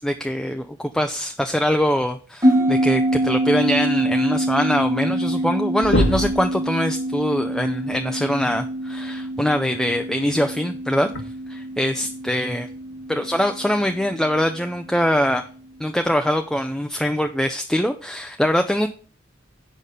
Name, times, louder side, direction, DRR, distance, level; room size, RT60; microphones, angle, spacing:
voice 1, 0.0-11.1 11.5-12.7 13.1-15.4 15.8-18.9, equal, 5° left, 6 dB, 0.3 m, -23 dB
sound 1, 2.4-15.2, right 1 dB, 20° right, 1.4 m, -25 dB
sound 2, 4.9-5.0 5.3-5.5 5.8-6.5 8.2-8.3 10.1-10.3 11.1-11.2, left 1 dB, 75° left, 1.5 m, -22 dB
8.3 x 5.2 x 5.5 m, 0.41 s
head